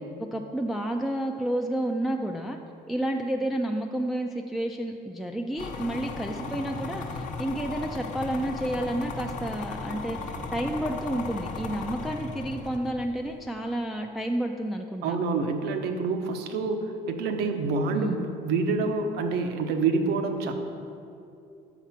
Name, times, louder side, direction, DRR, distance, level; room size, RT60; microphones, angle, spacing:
voice 1, 0.2-2.6 2.9-15.2 17.9-18.2, right 1 dB, ahead, 2 dB, 0.3 m, -30 dB
sound 1, 5.6-13.1, left 3 dB, 50° left, 0.7 m, -36 dB
voice 2, 15.0-20.5, right 4 dB, 80° right, 6 dB, 0.7 m, -27 dB
5.9 x 5.8 x 5.7 m, 2.6 s
cardioid pair, 110°, 17 cm